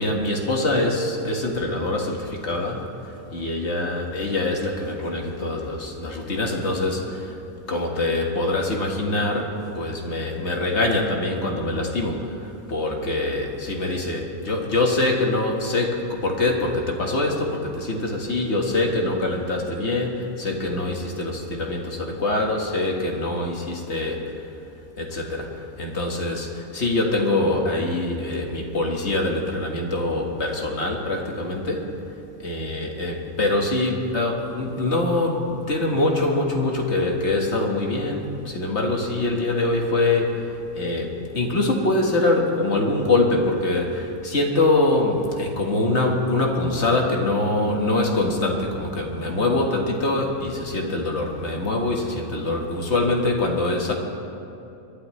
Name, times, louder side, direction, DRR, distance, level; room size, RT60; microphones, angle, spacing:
voice 1, 0.0-2.8 3.3-7.2 7.7-12.3 12.7-24.2 25.0-25.5 25.8-26.5 26.7-31.8 32.4-40.4 40.7-53.9, left 2 dB, 50° left, 0 dB, 1.8 m, -24 dB
24.5 x 12.0 x 3.2 m, 2.8 s
omnidirectional pair, 1.6 m